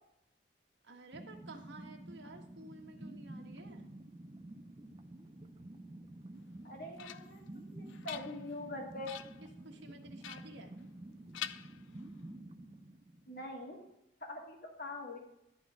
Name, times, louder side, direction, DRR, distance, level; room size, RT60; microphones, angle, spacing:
voice 1, 0.8-3.8 9.4-10.7, right 2 dB, 75° right, 2 dB, 1.3 m, -52 dB
sound 1, 1.1-13.8, right 1 dB, 25° right, 0.5 m, -50 dB
sound 2, 6.5-7.5 7.9-8.7 9.0-9.5 10.2-11.1 11.3-12.3, left 11 dB, 90° left, 0.4 m, -46 dB
voice 2, 6.6-7.4 7.7-9.2 13.3-13.8 14.2-15.2, left 1 dB, 50° left, 1 dB, 1.7 m, -43 dB
11.0 x 3.8 x 5.9 m, 0.85 s
head